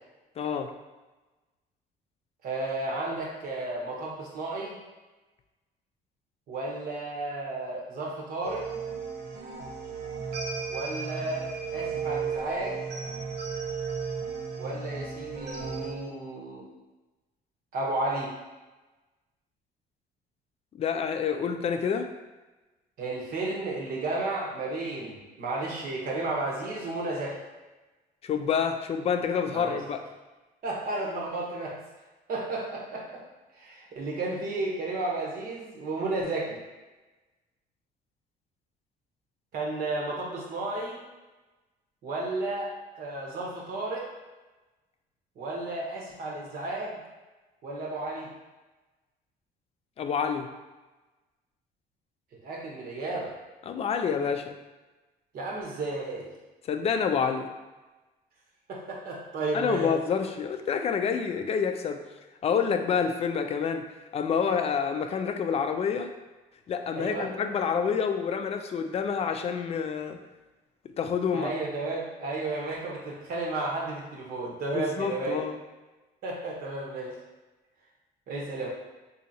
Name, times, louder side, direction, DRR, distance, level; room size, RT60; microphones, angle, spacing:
voice 1, 0.4-0.7 20.7-22.1 28.2-30.0 50.0-50.5 53.7-54.5 56.7-57.5 59.5-62.0 62.4-66.1 66.7-70.2 71.0-71.5 74.7-75.6, left 6 dB, 35° left, 7 dB, 0.4 m, -28 dB
voice 2, 2.4-4.8 6.5-8.6 10.7-12.8 14.6-16.6 17.7-18.3 23.0-27.4 29.5-29.8 30.6-31.8 32.3-33.2 33.6-36.6 39.5-41.0 42.0-44.1 45.4-47.0 47.6-48.3 52.4-53.3 55.3-56.3 58.7-59.9 66.9-67.3 71.3-75.4 76.2-77.2 78.3-78.7, right 2 dB, 60° right, -2 dB, 1.0 m, -33 dB
sound 1, 8.4-15.9, right 5 dB, 80° right, 0.7 m, -34 dB
4.1 x 2.8 x 2.7 m, 1.2 s
cardioid pair, 110°, 17 cm